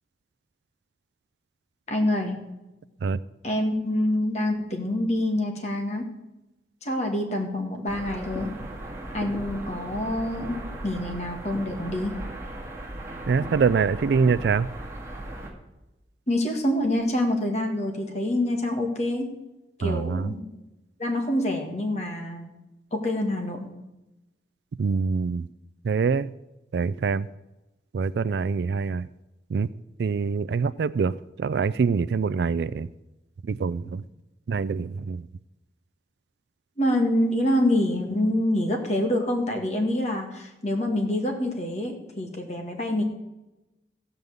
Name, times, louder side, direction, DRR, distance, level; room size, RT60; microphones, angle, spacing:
voice 1, 1.9-2.5 3.4-6.1 6.8-8.6 9.1-12.3 16.3-19.3 19.8-20.5 21.0-22.5 22.9-23.7 36.8-43.0, left 1 dB, 40° left, 2 dB, 1.9 m, -26 dB
sound 1, 7.9-15.5, right 1 dB, 15° right, 1.9 m, -37 dB
voice 2, 13.3-14.7 19.8-20.3 24.8-25.5 25.8-26.3 26.7-27.3 27.9-29.1 29.5-29.7 30.0-31.1 31.4-32.9 33.4-34.0 34.5-35.2, right 5 dB, 75° right, 17 dB, 0.3 m, -24 dB
15.0 x 5.4 x 8.0 m, 1.0 s
head